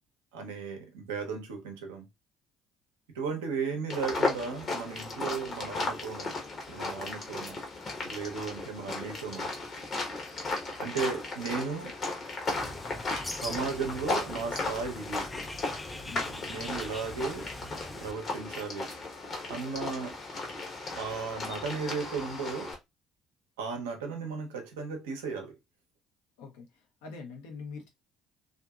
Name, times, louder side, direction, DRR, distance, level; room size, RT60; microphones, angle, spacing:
voice 1, 0.3-2.1 3.1-6.3 6.7-7.6 8.1-9.5 10.8-12.0 13.3-15.3 16.5-17.5 18.0-18.9 19.5-20.2 20.9-22.7 23.6-25.6, right 5 dB, 75° right, 0.6 m, -35 dB
sound 1, 3.9-22.7, left 3 dB, 40° left, 0.9 m, -36 dB
Bird, 12.5-18.1, left 2 dB, 20° left, 0.4 m, -43 dB
voice 2, 16.0-16.5 26.4-27.9, left 4 dB, 70° left, 0.7 m, -44 dB
2.6 x 2.5 x 2.3 m
figure-of-eight pair, 50°, 0 cm